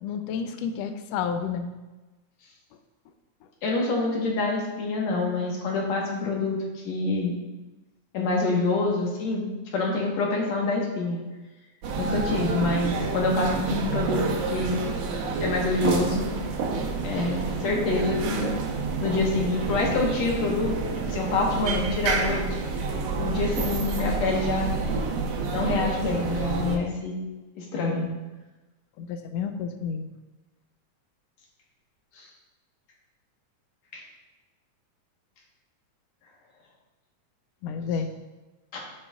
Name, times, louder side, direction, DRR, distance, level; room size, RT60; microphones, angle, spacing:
voice 1, 0.0-1.7 18.8-19.2 27.8-28.1 29.0-30.1 37.6-38.1, left 6 dB, 90° left, 7 dB, 1.4 m, -31 dB
voice 2, 3.6-7.3 8.1-11.2 12.0-14.2 14.5-14.8 15.4-16.3 17.0-18.5 19.0-20.7 21.1-22.6 23.2-24.8 25.5-27.2 27.6-28.1 33.9-34.0 38.7-38.8, left 3 dB, 65° left, -1 dB, 2.5 m, -26 dB
sound 1, 11.8-26.8, right 4 dB, 65° right, 1.9 m, -29 dB
14.0 x 5.3 x 2.4 m, 1.1 s
omnidirectional pair, 3.4 m